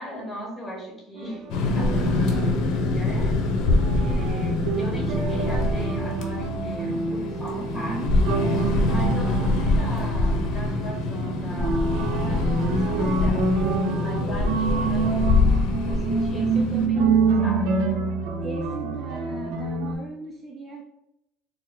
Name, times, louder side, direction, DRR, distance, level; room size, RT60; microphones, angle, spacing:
voice 1, 0.0-1.5 1.7-8.0 8.8-13.6 14.0-15.3 15.9-16.5 16.7-17.1 17.4-17.7, equal, 15° left, -1 dB, 1.4 m, -37 dB
sound 1, 1.2-2.6 3.7-19.9, right 4 dB, 70° right, 0.6 m, -27 dB
sound 2, 1.5-16.9, left 2 dB, 60° left, 0.8 m, -25 dB
voice 2, 7.7-8.2 16.3-17.7 18.4-20.8, right 2 dB, 20° right, 1 dB, 0.5 m, -36 dB
4.1 x 2.0 x 3.9 m, 0.81 s
cardioid pair, 130°, 0 cm